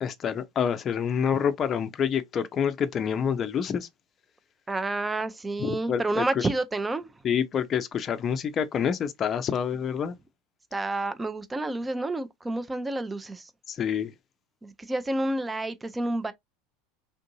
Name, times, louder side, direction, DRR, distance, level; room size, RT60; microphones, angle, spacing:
voice 1, 0.0-3.9 5.6-6.4 7.2-10.2 13.7-14.1, left 7 dB, 35° left, 0.5 m, -27 dB
voice 2, 4.7-7.1 10.7-13.5 14.6-16.3, right 2 dB, 15° right, 0.5 m, -29 dB
3.6 x 2.6 x 2.6 m
hypercardioid pair, 85°, 0 cm